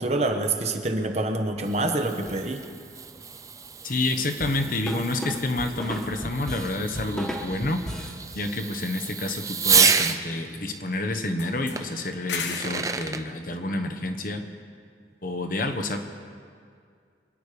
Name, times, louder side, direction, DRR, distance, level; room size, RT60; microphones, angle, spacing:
voice 1, 0.0-2.6, right 2 dB, 40° right, 5 dB, 1.2 m, -26 dB
Fireworks, 1.4-10.2 11.8-11.9 12.4-13.2, right 5 dB, 20° right, 0.5 m, -29 dB
voice 2, 3.8-7.8 8.3-14.4 15.2-16.0, left 2 dB, 50° left, 6 dB, 1.2 m, -29 dB
sound 1, 4.4-8.2, equal, 5° left, 1.5 m, -34 dB
sound 2, 5.3-5.5 8.7-9.5 9.7-10.9 11.4-12.9, left 5 dB, 85° left, 1.2 m, -38 dB
25.0 x 10.0 x 5.1 m, 2.2 s
head